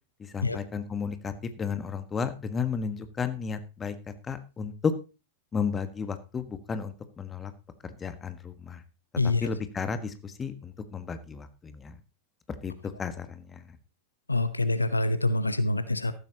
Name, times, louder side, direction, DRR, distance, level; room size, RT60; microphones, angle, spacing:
voice 1, 0.2-4.9 5.5-7.5 7.8-8.8 9.4-12.0 12.6-13.8, left 6 dB, 20° left, 10 dB, 1.5 m, -33 dB
voice 2, 9.2-9.5 14.3-16.1, left 2 dB, 80° left, 14 dB, 0.9 m, -26 dB
14.0 x 12.5 x 2.9 m, 0.31 s
figure-of-eight pair, 90°, 0 cm